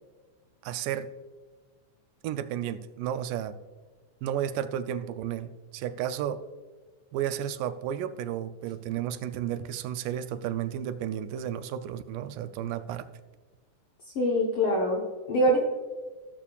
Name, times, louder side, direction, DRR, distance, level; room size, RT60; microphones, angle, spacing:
voice 1, 0.6-1.1 2.2-3.6 4.2-6.4 7.1-13.1, right 10 dB, 85° right, 11 dB, 2.2 m, -32 dB
voice 2, 14.1-15.6, equal, 65° left, -2 dB, 1.4 m, -24 dB
15.5 x 6.9 x 2.4 m, 1.4 s
omnidirectional pair, 3.8 m